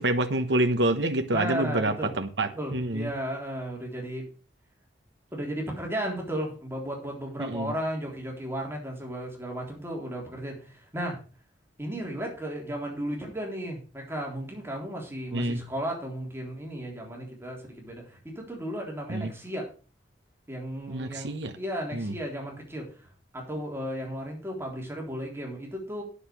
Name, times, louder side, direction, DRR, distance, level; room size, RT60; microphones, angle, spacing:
voice 1, 0.0-3.1 7.4-7.7 15.3-15.6 19.1-19.3 20.9-21.5 21.9-22.1, right 1 dB, 80° right, 1.1 m, -27 dB
voice 2, 1.3-2.1 2.5-4.3 5.3-11.2 11.8-19.7 20.5-26.0, equal, 15° right, 3.6 m, -35 dB
9.8 x 6.7 x 6.6 m
head